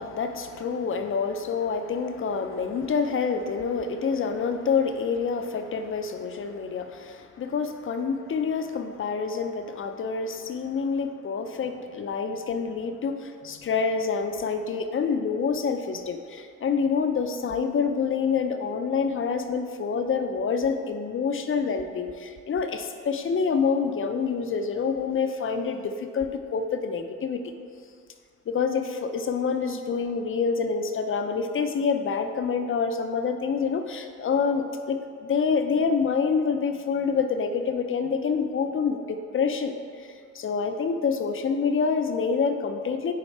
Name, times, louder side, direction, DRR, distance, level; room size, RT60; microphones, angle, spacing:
voice 1, 0.0-27.4 28.5-40.1 40.3-43.1, left 5 dB, 40° left, 7 dB, 0.5 m, -27 dB
6.5 x 4.1 x 4.2 m, 2.1 s
cardioid pair, 105°, 31 cm